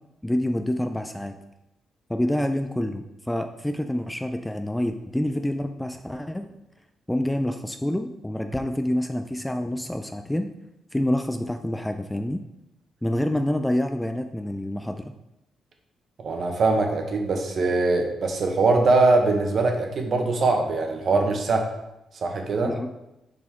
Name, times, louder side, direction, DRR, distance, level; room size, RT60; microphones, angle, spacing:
voice 1, 0.2-1.4 2.1-6.5 7.1-10.5 10.9-12.4 13.0-15.1 22.7-22.9, left 1 dB, 5° left, 7 dB, 0.3 m, -27 dB
voice 2, 16.2-21.7 22.2-22.7, right 3 dB, 50° right, 3 dB, 1.1 m, -22 dB
7.2 x 4.2 x 3.6 m, 0.90 s
cardioid pair, 125°, 0 cm